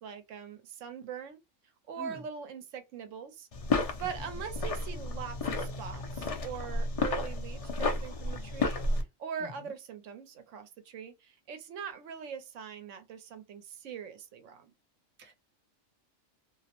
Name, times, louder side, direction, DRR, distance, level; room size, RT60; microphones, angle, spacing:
voice 1, 0.0-1.4 1.9-3.5 4.0-8.8 9.2-14.7, right 7 dB, 75° right, 0.9 m, -42 dB
sound 1, 3.5-9.0, left 3 dB, 70° left, 0.3 m, -32 dB
voice 2, 9.4-9.7 15.2-15.3, right 2 dB, 15° right, 0.4 m, -46 dB
2.5 x 2.0 x 2.8 m
omnidirectional pair, 1.3 m